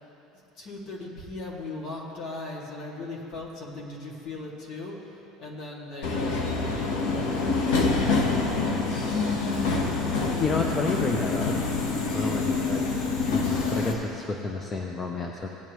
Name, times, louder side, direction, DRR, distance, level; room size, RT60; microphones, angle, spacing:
voice 1, 0.5-6.6 8.1-8.4 8.8-9.8, left 2 dB, 55° left, -2 dB, 2.3 m, -38 dB
Subway metro underground, 6.0-13.9, left 3 dB, 80° left, 1.3 m, -26 dB
voice 2, 10.3-11.6 12.1-12.8 13.2-15.5, left 4 dB, 25° left, 1 dB, 0.7 m, -30 dB
17.5 x 9.0 x 3.1 m, 3.0 s
cardioid pair, 130°, 0 cm